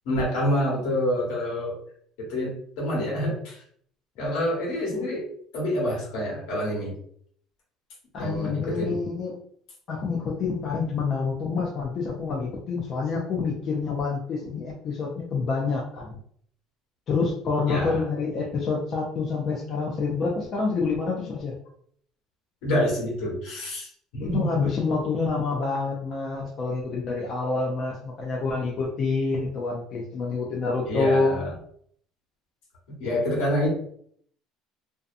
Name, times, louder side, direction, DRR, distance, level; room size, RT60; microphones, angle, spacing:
voice 1, 0.0-1.7 2.2-3.6 4.2-5.3 5.5-7.0 8.2-9.0 17.7-18.1 22.6-23.9 24.1-24.5 30.8-31.6 33.0-33.7, left 1 dB, 85° left, -3 dB, 1.3 m, -27 dB
voice 2, 8.1-9.3 9.9-16.1 17.1-21.5 24.2-31.4, left 4 dB, 45° left, -2 dB, 0.4 m, -27 dB
2.6 x 2.2 x 2.5 m, 0.63 s
cardioid pair, 135°, 0 cm